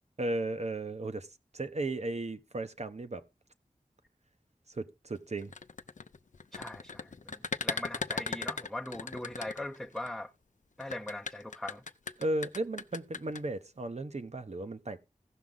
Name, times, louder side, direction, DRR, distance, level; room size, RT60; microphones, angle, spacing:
voice 1, 0.2-1.3 1.5-3.2 4.7-5.5 12.2-15.0, right 2 dB, 55° right, 0.9 m, -35 dB
sound 1, 5.4-10.1 10.8-13.4, left 4 dB, 70° left, 0.5 m, -38 dB
voice 2, 6.5-10.3 10.8-11.8, left 1 dB, ahead, 0.6 m, -40 dB
16.0 x 6.1 x 3.8 m
wide cardioid pair, 50°, 13 cm